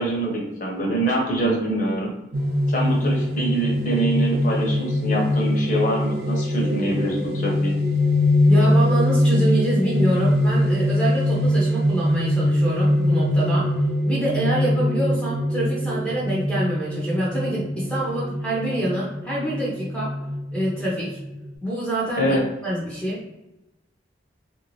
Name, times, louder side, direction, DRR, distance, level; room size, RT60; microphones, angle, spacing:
voice 1, 0.0-2.1 2.7-7.7 22.1-22.4, right 1 dB, 45° left, -2 dB, 0.9 m, -24 dB
sound 1, 2.3-21.5, left 1 dB, 60° right, 0.5 m, -22 dB
voice 2, 8.5-13.7 14.0-20.1 20.5-21.2 21.6-22.4 22.6-23.2, right 1 dB, 5° left, -6 dB, 0.7 m, -26 dB
3.6 x 2.6 x 3.1 m, 0.97 s
head